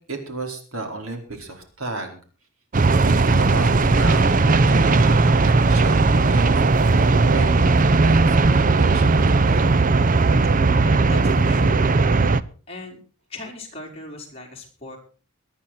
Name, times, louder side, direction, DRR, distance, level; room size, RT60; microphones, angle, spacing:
voice 1, 0.0-2.2 3.0-9.7, right 3 dB, 80° right, 4 dB, 4.6 m, -33 dB
sound 1, 2.7-12.4, right 3 dB, 40° right, 0.6 m, -17 dB
voice 2, 10.8-11.9 12.7-13.0 13.3-15.0, left 2 dB, 30° left, 1 dB, 4.6 m, -38 dB
23.5 x 9.8 x 4.3 m, 0.38 s
head